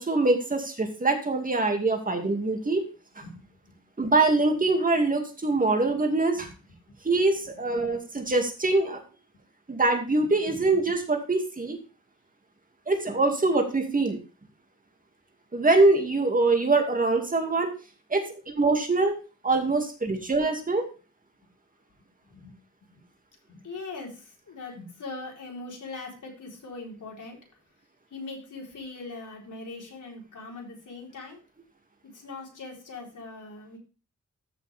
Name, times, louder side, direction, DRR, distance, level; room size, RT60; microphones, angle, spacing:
voice 1, 0.0-2.8 4.0-6.5 7.0-9.0 9.7-11.8 12.9-14.2 15.5-17.7 18.1-19.2 19.4-20.9, right 3 dB, 25° right, 3 dB, 2.3 m, -24 dB
voice 2, 3.2-3.8 6.3-6.5 7.7-8.0 10.5-10.7 22.2-22.5 22.8-23.0 23.5-27.4 28.1-31.4 32.0-33.8, left 3 dB, 75° left, -1 dB, 4.3 m, -41 dB
14.0 x 6.5 x 3.5 m, 0.35 s
wide cardioid pair, 155°, 31 cm